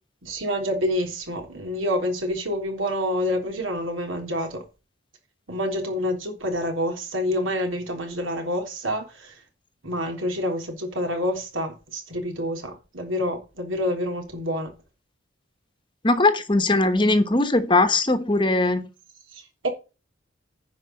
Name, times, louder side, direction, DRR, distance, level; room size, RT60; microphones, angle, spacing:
voice 1, 0.2-4.6 5.5-9.4 9.8-14.7 19.3-19.7, equal, 80° right, 3.5 m, -27 dB
voice 2, 16.0-18.8, left 2 dB, 25° left, 1.1 m, -20 dB
10.5 x 4.8 x 7.6 m
head